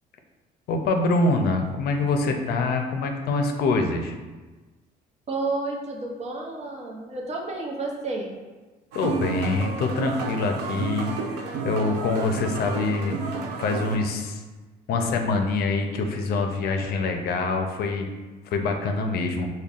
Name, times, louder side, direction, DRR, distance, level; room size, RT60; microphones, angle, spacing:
voice 1, 0.7-4.2 8.9-13.2 13.6-14.4 14.9-18.1 18.4-19.5, left 3 dB, 70° left, 4 dB, 0.5 m, -25 dB
voice 2, 5.3-8.3, right 3 dB, 40° right, 0 dB, 0.7 m, -31 dB
sound 1, 8.9-14.0, right 4 dB, 90° right, 0.4 m, -31 dB
5.1 x 2.2 x 2.4 m, 1.3 s
cardioid pair, 110°, 17 cm